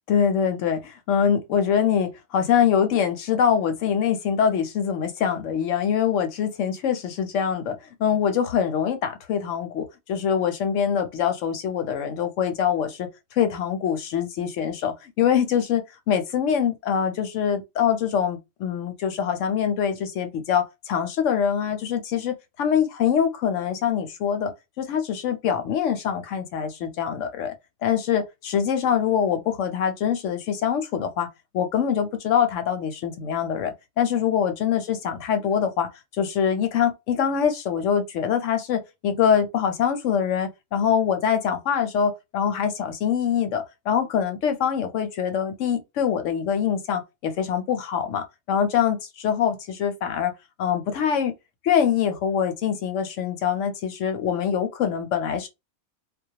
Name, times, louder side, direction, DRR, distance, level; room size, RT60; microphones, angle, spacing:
voice 1, 0.1-13.1 13.4-27.5 27.8-31.3 31.5-50.3 50.6-51.3 51.6-55.5, left 8 dB, 70° left, 0.9 m, -24 dB
2.2 x 2.2 x 2.7 m
omnidirectional pair, 1.4 m